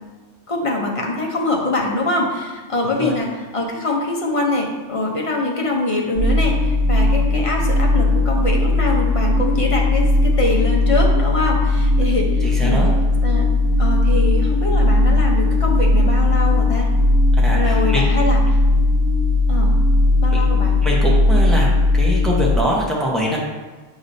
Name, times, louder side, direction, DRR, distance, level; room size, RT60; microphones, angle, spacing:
voice 1, 0.5-12.8 13.2-13.5 13.8-16.9 17.5-18.6 19.5-19.8 20.2-20.7, left 2 dB, 30° left, -1 dB, 0.7 m, -23 dB
voice 2, 2.8-3.1 7.0-7.1 12.4-12.9 17.3-18.0 20.3-20.4 20.8-21.7 21.9-23.4, equal, ahead, -4 dB, 0.9 m, -23 dB
sound 1, 6.2-22.6, left 2 dB, 85° right, 1.1 m, -17 dB
7.2 x 4.8 x 2.7 m, 1.3 s
omnidirectional pair, 1.3 m